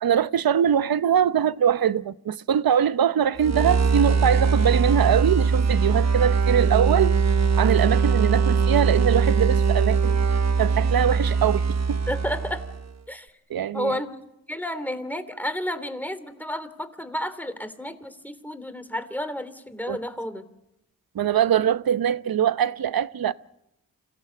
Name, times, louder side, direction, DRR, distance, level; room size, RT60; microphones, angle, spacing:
voice 1, 0.0-7.2 7.6-10.2 10.6-12.0 13.5-14.0 19.9-20.0 21.1-23.3, right 9 dB, 65° right, 0.9 m, -22 dB
sound 1, 3.4-12.9, right 5 dB, 45° right, 1.1 m, -21 dB
voice 2, 12.1-12.6 13.1-13.3 13.7-14.1 14.5-20.5, left 1 dB, 5° left, 3.0 m, -31 dB
26.5 x 16.5 x 8.6 m
cardioid pair, 50°, 38 cm